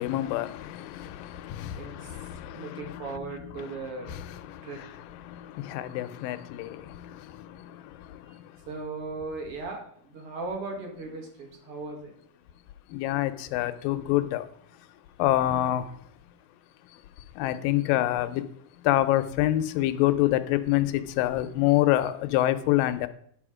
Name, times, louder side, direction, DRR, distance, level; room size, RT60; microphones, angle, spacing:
voice 1, 0.0-8.6 12.9-14.5 15.2-16.0 16.9-23.1, left 15 dB, 80° left, 2.3 m, -28 dB
voice 2, 1.8-2.2 2.5-4.1 4.6-4.8 8.7-12.1, right 3 dB, 45° right, 2.3 m, -37 dB
10.5 x 5.5 x 4.9 m
omnidirectional pair, 4.0 m